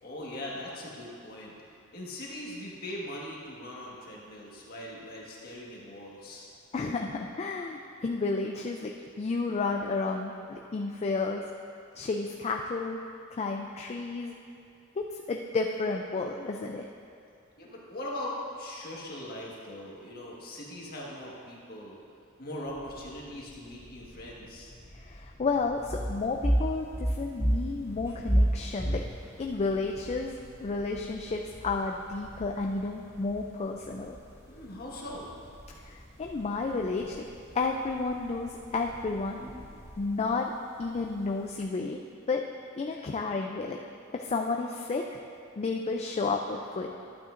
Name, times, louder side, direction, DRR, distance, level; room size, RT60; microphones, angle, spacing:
voice 1, 0.0-1.5 1.9-6.5 17.6-22.0 22.4-24.7 34.4-35.3, left 1 dB, 45° left, -4 dB, 1.5 m, -40 dB
voice 2, 6.7-8.9 9.2-11.4 12.0-13.0 13.3-14.3 15.0-16.9 24.9-29.0 29.4-34.2 35.7-37.2 37.5-39.4 40.0-40.5 40.8-42.0 42.3-42.4 42.8-43.8 44.1-45.0 45.6-46.9, left 3 dB, 30° left, 1 dB, 0.3 m, -31 dB
sound 1, 22.6-40.3, equal, 10° left, 1.5 m, -53 dB
sound 2, 25.8-41.6, right 1 dB, 15° right, 0.9 m, -34 dB
12.0 x 8.5 x 2.5 m, 2.4 s
head